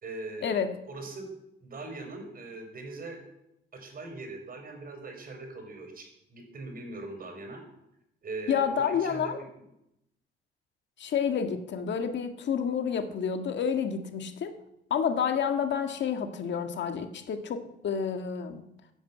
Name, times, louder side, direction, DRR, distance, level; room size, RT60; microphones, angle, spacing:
voice 1, 0.0-1.3 1.6-3.2 3.7-6.0 6.3-7.6 8.2-9.7, right 2 dB, 45° right, 5 dB, 5.3 m, -41 dB
voice 2, 8.5-9.4 11.0-14.6 14.9-18.6, left 7 dB, 65° left, 7 dB, 1.8 m, -29 dB
14.0 x 9.2 x 8.5 m, 0.83 s
cardioid pair, 90°, 20 cm